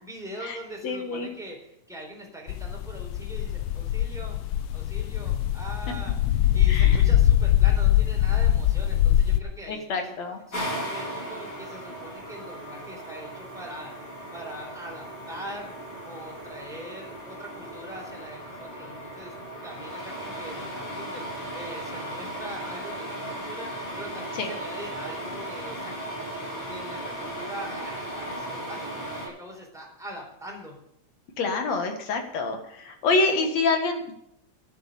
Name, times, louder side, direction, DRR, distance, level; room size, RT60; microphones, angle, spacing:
voice 1, 0.0-4.4 4.7-6.2 6.4-10.1 10.5-13.9 14.3-15.7 16.0-19.3 19.6-30.8, equal, ahead, -1 dB, 3.7 m, -42 dB
voice 2, 0.8-1.3 6.7-7.0 9.7-10.4 24.3-24.5 31.4-34.1, left 3 dB, 65° left, 5 dB, 2.8 m, -26 dB
sound 1, 2.5-9.4, left 12 dB, 80° left, 1.2 m, -22 dB
sound 2, 10.5-29.3, right 1 dB, 40° left, 4.8 m, -36 dB
11.0 x 11.0 x 6.9 m, 0.79 s
omnidirectional pair, 3.4 m